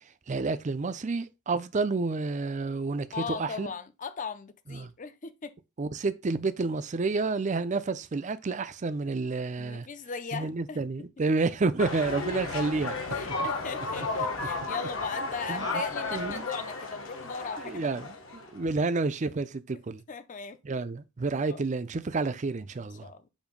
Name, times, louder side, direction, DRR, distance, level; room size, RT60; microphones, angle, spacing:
voice 1, 0.3-3.7 4.7-4.9 5.8-9.9 10.3-13.0 13.2-13.3 15.5-15.7 16.1-16.5 17.6-20.0 20.6-23.1, right 3 dB, 35° right, 0.5 m, -30 dB
voice 2, 3.1-5.5 9.6-11.1 13.1-17.9 18.6-18.7 20.1-20.6 21.3-21.6 23.0-23.3, left 5 dB, 40° left, 0.6 m, -38 dB
sound 1, 11.8-18.6, left 3 dB, 70° left, 1.2 m, -33 dB
7.2 x 2.7 x 5.2 m
head